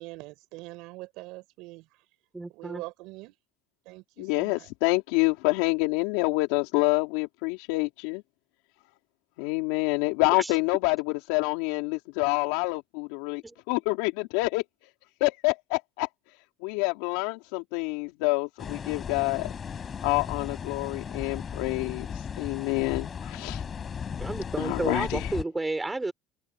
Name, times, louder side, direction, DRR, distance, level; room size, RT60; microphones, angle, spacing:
voice 1, 0.0-2.1 2.5-3.3 3.8-4.7, right 22 dB, 75° right, 6.3 m, -43 dB
voice 2, 2.3-2.8 10.3-10.5 13.4-13.5 24.2-26.1, right 2 dB, 10° right, 6.7 m, -31 dB
voice 3, 4.2-8.2 9.4-11.0 11.3-13.4 13.7-14.6 15.2-16.1 16.6-19.5 20.0-23.6 24.6-25.3, left 24 dB, 85° left, 3.6 m, -27 dB
sound 1, 18.6-25.4, left 7 dB, 35° left, 5.3 m, -36 dB
supercardioid pair, 115°, 0 cm